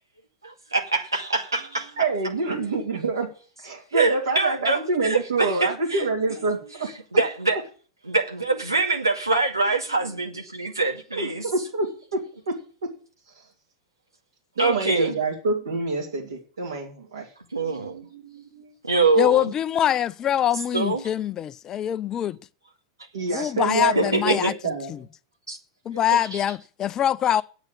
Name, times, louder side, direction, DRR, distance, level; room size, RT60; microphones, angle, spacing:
voice 1, 0.4-1.9 3.9-6.1 7.1-7.6 8.1-11.4 14.6-15.2 17.5-18.0 18.8-19.5 20.7-21.1 23.3-23.5 24.0-24.5 25.5-25.6 26.3-26.4, right 3 dB, 85° right, 2.1 m, -24 dB
voice 2, 2.0-3.3 3.6-6.9 11.1-12.9 14.6-17.3 17.6-18.7 23.1-24.9, right 3 dB, 70° right, 3.0 m, -27 dB
voice 3, 19.2-22.4 23.3-24.5 24.9-25.0 25.9-27.4, left 10 dB, 30° left, 0.5 m, -24 dB
9.0 x 8.2 x 8.5 m
figure-of-eight pair, 90°, 2 cm